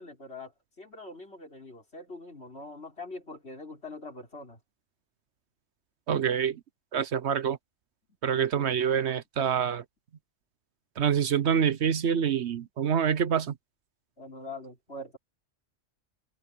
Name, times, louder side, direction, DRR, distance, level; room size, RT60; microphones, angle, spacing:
voice 1, 0.0-4.6 8.3-8.7 14.2-15.2, left 2 dB, 60° left, 5.2 m, -43 dB
voice 2, 6.1-6.6 6.9-7.6 8.2-9.8 11.0-13.6, right 8 dB, 65° right, 1.1 m, -26 dB
omnidirectional pair, 1.2 m